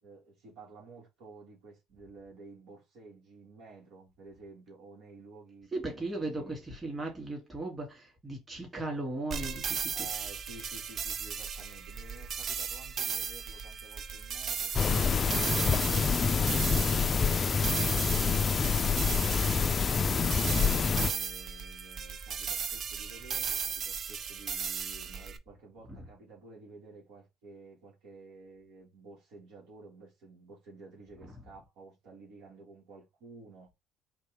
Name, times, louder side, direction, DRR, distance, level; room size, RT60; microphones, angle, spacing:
voice 1, 0.0-6.6 9.9-17.3 17.6-20.4 20.9-33.7, right 3 dB, 75° right, 2.5 m, -52 dB
voice 2, 5.7-10.1 20.4-20.8 25.9-26.0 31.2-31.3, right 2 dB, 25° right, 3.0 m, -37 dB
sound 1, 9.3-25.4, right 6 dB, 50° right, 0.6 m, -36 dB
sound 2, 14.7-21.1, left 5 dB, 35° left, 0.4 m, -27 dB
4.3 x 3.1 x 3.7 m
supercardioid pair, 75°, 0 cm